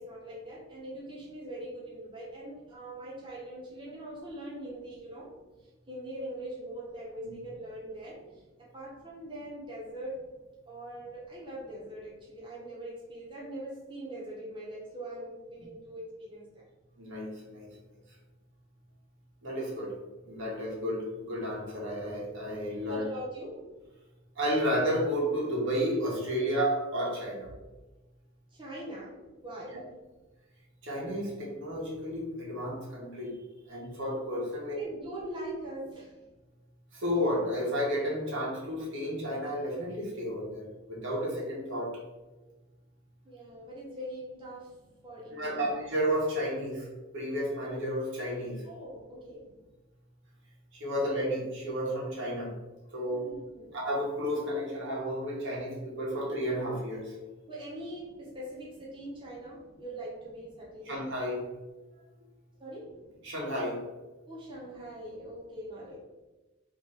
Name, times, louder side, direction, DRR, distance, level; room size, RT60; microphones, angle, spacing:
voice 1, 0.0-5.3 5.6-10.3 10.7-16.6 22.8-23.7 28.5-30.0 34.8-36.2 43.2-44.8 45.0-45.7 48.6-49.5 53.1-53.8 57.5-61.0 62.6-63.0 64.3-66.0, right 1 dB, 25° right, -7 dB, 0.9 m, -42 dB
voice 2, 17.0-17.7 19.4-19.9 20.2-23.1 24.3-27.5 29.7-29.8 30.8-33.4 33.7-34.8 36.9-42.0 45.3-46.9 47.1-48.6 50.7-52.5 52.9-53.3 53.7-57.1 60.8-61.5 63.2-63.8, equal, 65° right, -4 dB, 1.5 m, -32 dB
3.3 x 3.1 x 4.0 m, 1.1 s
head